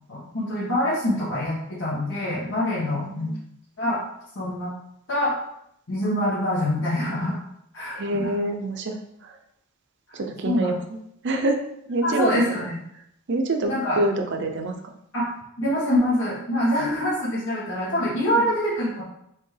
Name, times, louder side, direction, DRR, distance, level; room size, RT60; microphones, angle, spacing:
voice 1, 0.1-3.3 3.8-4.0 4.3-4.7 5.1-5.3 5.9-7.4 7.7-8.3 10.4-10.7 12.0-12.8 13.7-14.0 15.1-15.3 15.6-19.0, left 1 dB, 65° left, -9 dB, 1.4 m, -25 dB
voice 2, 2.9-3.3 7.9-9.0 9.2-9.4 10.1-10.8 11.2-11.6 11.9-12.7 13.3-14.7 18.3-18.4, right 2 dB, 55° right, 4 dB, 0.6 m, -26 dB
4.4 x 3.4 x 3.3 m, 0.75 s
head